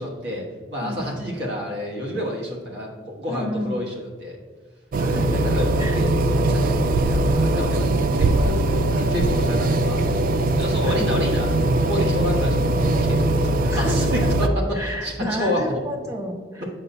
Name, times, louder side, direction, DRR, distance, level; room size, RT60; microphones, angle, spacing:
voice 1, 0.0-4.4 5.2-11.5 11.8-14.5 14.8-15.1 15.4-15.6, equal, 70° right, -2 dB, 1.3 m, -29 dB
voice 2, 3.3-3.8 4.9-5.4 5.8-6.0 10.8-11.1 13.6-14.0 14.2-14.3 14.7-16.7, left 1 dB, 15° right, 1 dB, 1.0 m, -31 dB
sound 1, 4.9-14.5, right 1 dB, 50° right, 0.3 m, -21 dB
7.6 x 5.4 x 2.6 m, 1.5 s
head